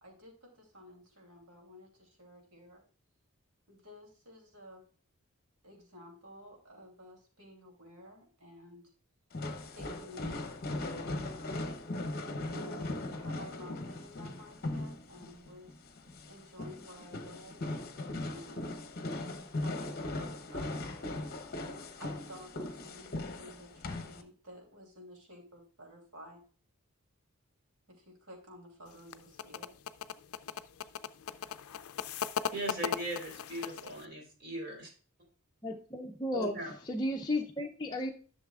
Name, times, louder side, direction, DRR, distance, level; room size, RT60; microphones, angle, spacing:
voice 1, 0.0-2.8 3.7-4.8 5.6-8.9 9.7-11.6 12.5-15.8 16.3-17.8 18.2-18.8 19.6-20.9 22.0-26.4 27.9-29.7, equal, 80° right, 2 dB, 3.0 m, -52 dB
sound 1, 9.3-24.2, left 2 dB, 45° left, 0.8 m, -39 dB
sound 2, 28.9-34.1, left 8 dB, 70° left, 0.4 m, -38 dB
voice 2, 32.5-34.9 36.3-36.7, right 1 dB, 50° right, 0 dB, 3.7 m, -39 dB
voice 3, 35.6-36.6 36.9-38.1, left 1 dB, 20° left, -1 dB, 0.6 m, -34 dB
11.0 x 6.6 x 2.4 m, 0.40 s
head